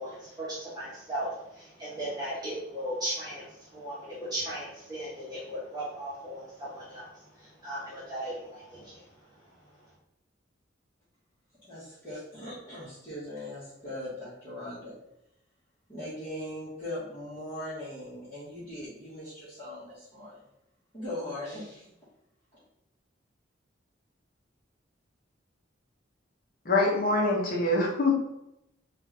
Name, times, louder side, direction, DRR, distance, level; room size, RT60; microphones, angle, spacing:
voice 1, 0.0-9.8, right 1 dB, 20° right, -9 dB, 1.0 m, -37 dB
voice 2, 11.7-14.9 15.9-20.4 20.9-21.9, left 1 dB, 25° left, -14 dB, 1.3 m, -39 dB
voice 3, 26.6-28.2, left 2 dB, 45° left, -2 dB, 0.8 m, -24 dB
3.2 x 2.5 x 3.2 m, 0.82 s
head